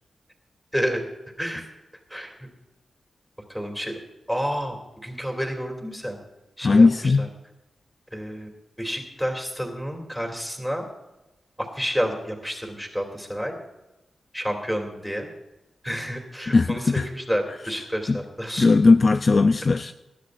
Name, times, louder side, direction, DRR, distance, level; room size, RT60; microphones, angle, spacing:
voice 1, 0.7-1.0 1.4-1.6 2.1-2.3 3.5-4.0 4.3-4.8 5.0-6.2 6.6-7.3 8.1-8.5 8.8-10.9 11.6-13.6 14.3-15.3 15.8-18.7, equal, ahead, 2 dB, 2.8 m, -29 dB
voice 2, 6.6-7.3 16.5-17.1 18.1-18.2 18.6-19.9, left 3 dB, 45° left, 8 dB, 0.4 m, -18 dB
20.0 x 12.5 x 2.6 m, 1.0 s
cardioid pair, 80°, 0 cm